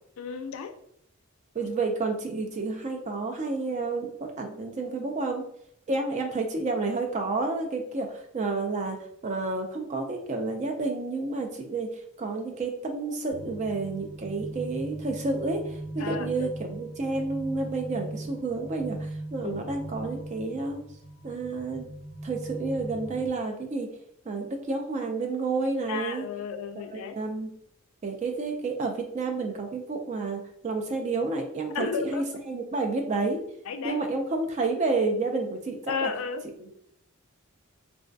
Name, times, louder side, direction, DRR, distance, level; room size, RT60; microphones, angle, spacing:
voice 1, 0.2-0.8 16.0-16.5 19.4-19.6 25.9-27.2 31.7-32.2 33.7-34.0 35.9-36.4, left 6 dB, 70° left, 0.3 m, -33 dB
voice 2, 1.5-5.4 5.9-9.0 9.2-11.9 12.2-20.8 21.2-21.9 22.2-23.9 24.3-26.3 26.9-27.5 28.0-33.4 33.8-36.1 36.6-36.7, right 3 dB, 35° right, 0.3 m, -30 dB
sound 1, 13.3-23.3, right 2 dB, 15° left, 0.9 m, -39 dB
2.3 x 2.1 x 2.5 m
head